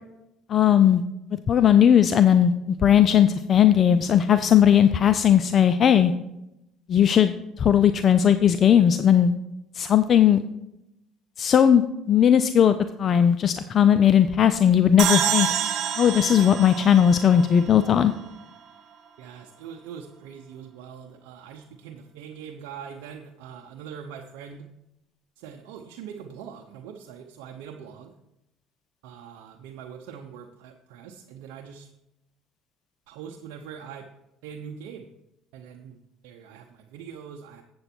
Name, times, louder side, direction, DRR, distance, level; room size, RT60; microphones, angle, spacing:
voice 1, 0.5-1.0 1.5-6.1 6.9-9.3 9.7-10.4 11.4-15.5 16.0-18.1, left 9 dB, 45° left, 11 dB, 0.4 m, -18 dB
sound 1, 15.0-18.3, right 9 dB, 60° right, 1.4 m, -27 dB
voice 2, 19.2-24.7 25.4-28.1 29.0-31.9 33.1-34.1 34.4-35.1 35.5-37.6, right 7 dB, 80° right, 2 dB, 0.7 m, -42 dB
7.9 x 7.8 x 4.3 m, 0.87 s
supercardioid pair, 85°, 0 cm